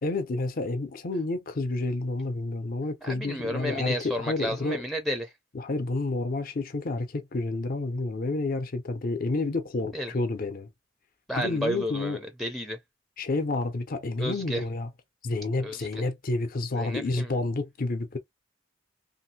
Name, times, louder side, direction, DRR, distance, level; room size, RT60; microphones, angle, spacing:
voice 1, 0.0-4.8 5.5-10.7 11.4-12.2 13.2-14.9 15.2-18.2, left 2 dB, 50° left, 0.6 m, -29 dB
voice 2, 3.0-5.3 9.9-10.1 11.3-12.8 14.2-14.6 15.6-16.0 16.7-17.3, equal, ahead, 0.5 m, -32 dB
3.1 x 2.6 x 2.7 m
head